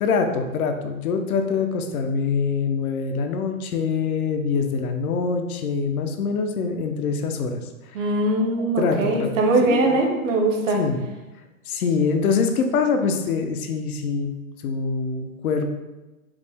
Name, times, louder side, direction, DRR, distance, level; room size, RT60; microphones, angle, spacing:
voice 1, 0.0-7.7 8.0-8.1 8.8-9.3 9.6-10.0 10.7-11.0 11.7-14.3 14.6-15.7, left 5 dB, 80° left, 6 dB, 0.7 m, -24 dB
voice 2, 7.9-10.8, right 2 dB, 65° right, 2 dB, 0.8 m, -21 dB
4.8 x 2.1 x 3.4 m, 1.1 s
hypercardioid pair, 165°, 42 cm